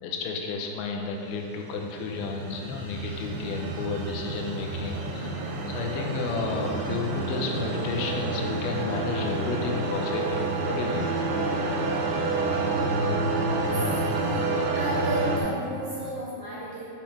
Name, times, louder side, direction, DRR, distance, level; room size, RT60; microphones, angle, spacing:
voice 1, 0.0-11.1, left 4 dB, 80° left, 1 dB, 2.8 m, -32 dB
sound 1, 1.3-15.4, right 2 dB, 80° right, 2.5 m, -29 dB
voice 2, 13.6-14.5 14.7-16.8, equal, 60° right, -9 dB, 2.4 m, -34 dB
10.0 x 5.8 x 3.5 m, 2.5 s
omnidirectional pair, 5.2 m